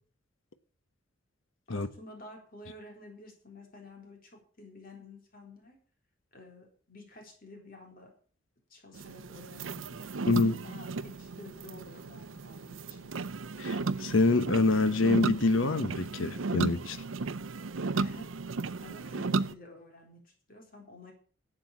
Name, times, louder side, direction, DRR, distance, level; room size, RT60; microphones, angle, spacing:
voice 1, 1.7-5.8 6.3-8.1 8.7-10.2 10.6-13.1 17.9-18.3 18.8-21.1, left 2 dB, 45° left, 4.0 m, -51 dB
sound 1, 8.9-19.5, right 4 dB, 80° right, 0.6 m, -35 dB
voice 2, 10.3-10.6 13.6-17.0, left 3 dB, 85° left, 0.9 m, -26 dB
12.5 x 7.9 x 8.4 m
head